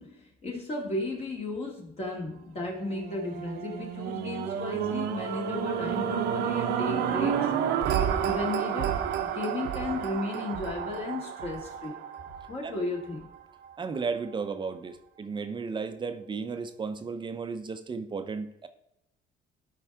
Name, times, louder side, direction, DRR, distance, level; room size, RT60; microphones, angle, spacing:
voice 1, 0.0-7.5 8.2-12.0 12.5-13.3, left 2 dB, 35° left, -1 dB, 2.1 m, -34 dB
sound 1, 2.8-13.1 13.6-13.7, right 9 dB, 80° right, 1.0 m, -30 dB
voice 2, 13.8-18.7, right 5 dB, 25° right, 9 dB, 0.7 m, -34 dB
12.5 x 4.8 x 3.5 m, 0.82 s
cardioid pair, 110°, 17 cm